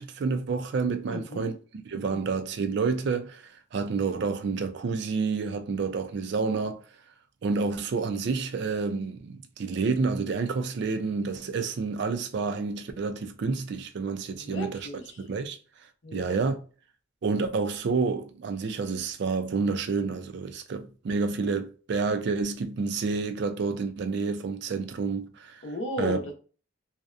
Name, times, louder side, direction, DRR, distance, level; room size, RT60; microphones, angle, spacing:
voice 1, 0.0-1.6 1.9-6.8 7.4-14.9 15.2-15.6 16.1-16.6 17.2-25.6 26.0-26.2, right 4 dB, 60° right, 0.3 m, -29 dB
voice 2, 1.1-1.5 2.1-2.2 14.3-15.1 16.0-16.4 25.6-26.3, left 1 dB, 65° left, 0.6 m, -34 dB
2.7 x 2.0 x 2.4 m
head